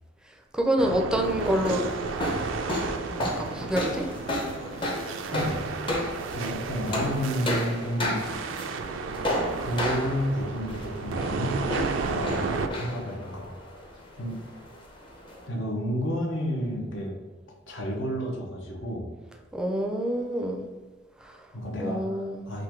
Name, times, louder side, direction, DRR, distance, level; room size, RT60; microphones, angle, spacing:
voice 1, 0.5-1.8 3.1-4.1 19.5-20.7 21.2-21.3 21.8-22.4, right 1 dB, 5° right, 2 dB, 0.4 m, -27 dB
sound 1, 0.8-12.7, right 4 dB, 85° right, 0.4 m, -33 dB
sound 2, 1.2-15.5, left 1 dB, 25° left, 0.7 m, -33 dB
voice 2, 5.3-5.7 6.3-8.2 9.6-13.5 14.1-14.4 15.5-17.2 17.7-19.1 21.5-22.6, equal, 75° left, -1 dB, 1.0 m, -31 dB
3.8 x 2.6 x 4.6 m, 1.3 s
head